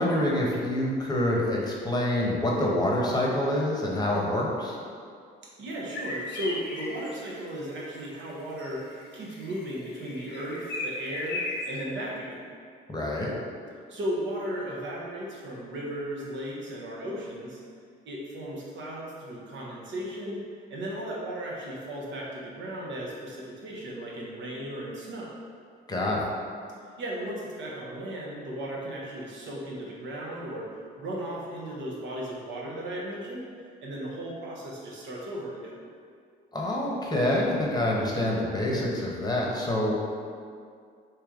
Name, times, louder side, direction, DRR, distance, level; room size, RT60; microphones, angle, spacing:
voice 1, 0.0-4.8 12.9-13.3 25.9-26.3 36.5-39.9, left 1 dB, 20° left, -3 dB, 0.9 m, -26 dB
voice 2, 5.6-8.8 9.1-12.4 13.9-17.6 18.1-20.4 20.7-25.4 27.0-30.7 31.0-33.5 33.8-35.8, right 1 dB, 65° right, -3 dB, 0.9 m, -35 dB
sound 1, 5.9-7.2 7.9-8.0 8.4-11.8, left 2 dB, 55° left, 0.7 m, -36 dB
3.3 x 2.9 x 3.6 m, 2.2 s
supercardioid pair, 75°, 21 cm